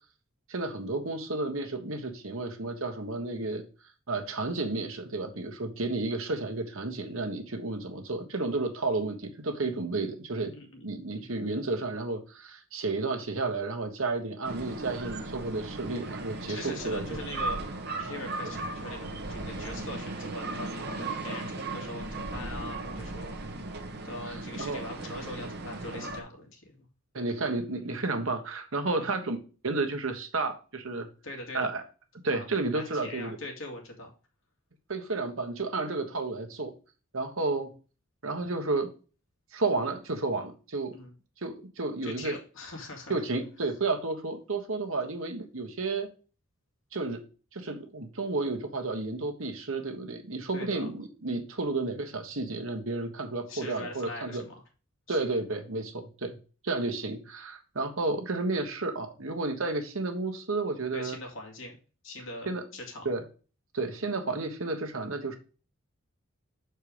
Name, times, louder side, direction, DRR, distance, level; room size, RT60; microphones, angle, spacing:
voice 1, 0.5-3.6 4.1-10.5 10.8-17.0 24.3-24.8 27.1-29.4 29.6-31.1 31.5-31.8 32.2-33.4 34.9-36.7 37.1-37.7 38.2-38.9 39.5-40.9 41.4-42.4 43.1-46.1 46.9-47.2 47.5-54.4 55.1-56.4 56.6-61.2 62.5-62.6 63.0-63.2 63.7-65.4, right 3 dB, 65° right, 5 dB, 1.3 m, -32 dB
voice 2, 10.5-10.9 11.2-11.3 16.5-17.6 18.0-23.4 24.0-26.9 29.0-29.1 31.2-31.7 32.3-32.5 32.7-34.1 40.9-41.1 42.0-43.2 50.5-50.9 53.5-54.6 55.1-55.4 60.9-61.8 62.0-63.1, left 1 dB, 60° left, 1 dB, 2.2 m, -42 dB
windy day in a small french village, 14.4-26.2, right 2 dB, 45° right, 1.1 m, -37 dB
6.7 x 4.5 x 4.9 m, 0.35 s
head